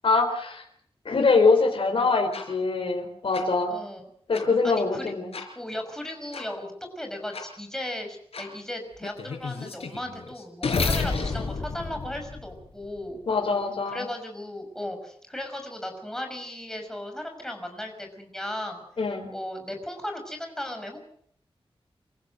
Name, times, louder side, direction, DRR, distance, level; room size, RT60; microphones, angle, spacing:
voice 1, 0.0-0.6 1.0-3.7 4.3-5.3 13.3-14.1 19.0-19.3, left 4 dB, 65° left, 2 dB, 4.3 m, -23 dB
sound 1, 2.3-2.4 3.3-3.4 4.3-4.4 5.3-5.5 6.3-6.4 7.3-7.4 8.3-8.5 9.0-12.9, left 4 dB, 85° left, 5.0 m, -31 dB
voice 2, 3.7-4.0 4.6-5.1 5.5-13.2 13.9-18.8 19.3-21.0, left 1 dB, 5° left, 4 dB, 6.0 m, -36 dB
27.0 x 15.5 x 6.5 m, 0.65 s
wide cardioid pair, 115°, 10 cm